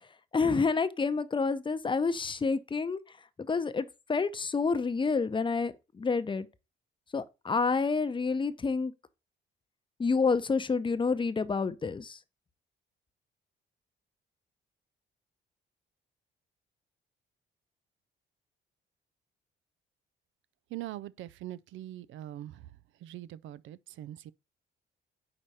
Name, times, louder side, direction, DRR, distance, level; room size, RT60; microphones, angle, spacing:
voice 1, 0.3-3.0 3.4-6.5 7.1-8.9 10.0-12.2, left 4 dB, 25° left, 0.7 m, -28 dB
voice 2, 20.7-22.7 23.0-24.3, right 13 dB, 75° right, 0.4 m, -42 dB
4.9 x 4.3 x 5.5 m
cardioid pair, 90°, 20 cm